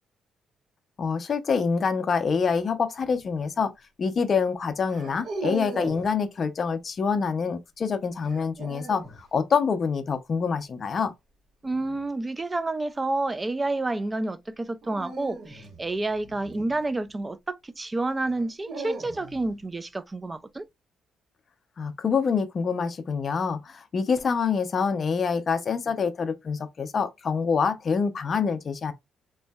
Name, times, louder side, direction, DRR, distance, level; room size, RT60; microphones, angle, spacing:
voice 1, 1.0-3.7 4.0-11.1 21.8-28.9, left 5 dB, 45° left, 0.5 m, -26 dB
sound 1, 3.0-3.3 4.9-6.1 8.2-9.2 11.6-12.0 14.8-17.2 18.2-19.5, right 2 dB, 70° right, 1.4 m, -38 dB
voice 2, 11.6-20.7, right 2 dB, 20° right, 0.3 m, -29 dB
3.1 x 2.6 x 2.2 m
cardioid pair, 90°, 0 cm